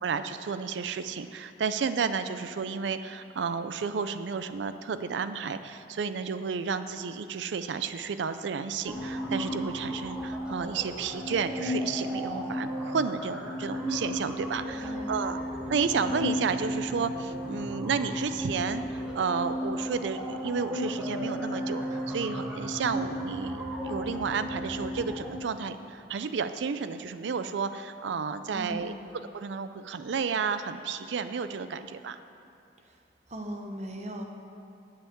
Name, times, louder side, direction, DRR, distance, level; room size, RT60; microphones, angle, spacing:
voice 1, 0.0-15.4 15.7-28.9 29.3-32.2, right 5 dB, 80° right, 11 dB, 0.4 m, -32 dB
sound 1, 8.8-25.3, equal, 5° right, 1.4 m, -34 dB
voice 2, 14.7-15.3 28.5-29.0 32.8-34.2, right 1 dB, 40° right, 3 dB, 1.0 m, -39 dB
9.9 x 5.7 x 8.4 m, 2.5 s
head